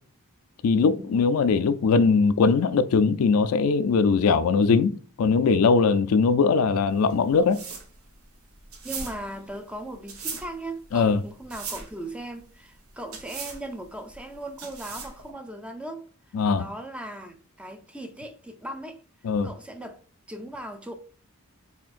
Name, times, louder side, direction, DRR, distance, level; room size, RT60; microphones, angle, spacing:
voice 1, 0.6-7.6 10.9-11.2 16.3-16.6 19.2-19.5, left 5 dB, 80° left, 0.4 m, -21 dB
sound 1, 6.9-15.3, right 5 dB, 80° right, 1.0 m, -39 dB
voice 2, 8.8-16.1 16.5-19.0 19.4-20.0 20.3-20.9, right 1 dB, 5° right, 0.4 m, -38 dB
4.3 x 3.6 x 2.4 m
head